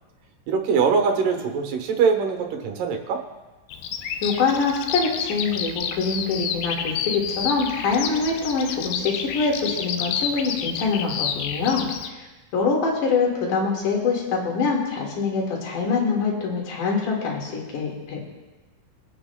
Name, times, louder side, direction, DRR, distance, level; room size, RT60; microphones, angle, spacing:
voice 1, 0.5-3.2, right 5 dB, 75° right, 4 dB, 2.7 m, -22 dB
Bird vocalization bird call bird song, 3.7-12.1, left 7 dB, 85° left, 2.2 m, -30 dB
voice 2, 4.2-12.3 12.5-18.2, left 4 dB, 65° left, -1 dB, 3.3 m, -24 dB
23.0 x 8.6 x 2.2 m, 1.2 s
omnidirectional pair, 4.0 m